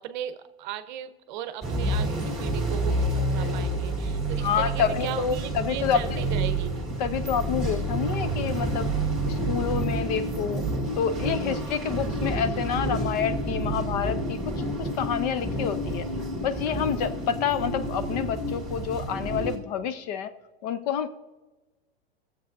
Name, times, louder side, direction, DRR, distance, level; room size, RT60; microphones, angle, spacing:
voice 1, 0.0-6.7, right 10 dB, 45° right, 11 dB, 0.7 m, -37 dB
sound 1, 1.6-19.6, right 1 dB, ahead, 2.3 m, -29 dB
voice 2, 4.4-6.2 7.0-8.9 9.2-10.6 11.0-16.1 16.4-20.3 20.6-21.1, left 8 dB, 40° left, 13 dB, 0.5 m, -28 dB
20.5 x 7.4 x 2.6 m, 1.2 s
supercardioid pair, 155°, 32 cm